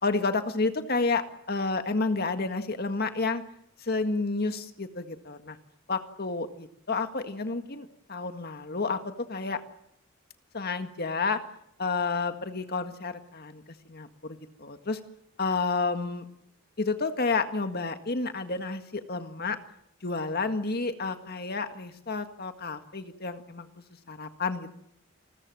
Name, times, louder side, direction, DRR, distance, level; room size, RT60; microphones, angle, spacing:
voice 1, 0.0-3.4 3.8-5.6 5.9-9.6 10.5-11.4 11.8-13.6 13.9-15.0 15.4-16.2 16.8-19.6 20.0-23.7 24.1-24.7, left 3 dB, 50° left, 8 dB, 1.8 m, -30 dB
29.5 x 21.0 x 7.7 m, 0.76 s
head